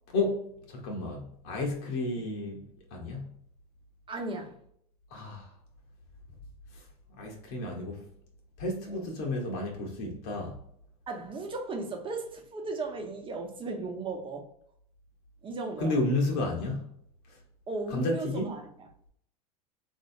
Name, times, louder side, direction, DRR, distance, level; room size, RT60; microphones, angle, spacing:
voice 1, 0.7-3.3 5.1-5.5 6.7-6.8 7.2-8.0 8.6-10.6 15.8-16.9 17.3-17.4 17.9-18.5, left 2 dB, 55° left, 1.0 m, -32 dB
voice 2, 4.1-4.6 8.9-9.1 11.1-14.5 15.4-16.0 17.7-18.9, right 3 dB, 25° right, 0.9 m, -36 dB
3.1 x 2.7 x 2.6 m
hypercardioid pair, 90°, 20 cm